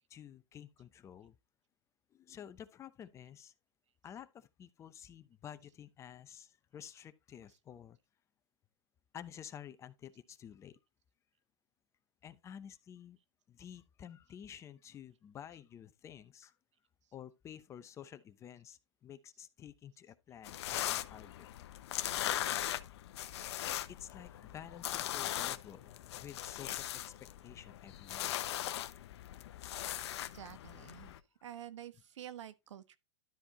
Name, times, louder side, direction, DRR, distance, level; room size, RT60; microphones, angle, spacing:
voice 1, 0.1-1.4 2.1-3.5 4.0-8.0 9.1-10.8 12.2-13.2 13.5-16.6 17.1-21.5 23.9-28.4, left 9 dB, 20° left, 0.7 m, -51 dB
sound 1, 20.4-31.2, left 12 dB, 60° left, 0.9 m, -39 dB
voice 2, 30.3-31.1 31.4-33.0, right 11 dB, 75° right, 1.3 m, -48 dB
13.0 x 4.4 x 4.1 m
hypercardioid pair, 140°, 15 cm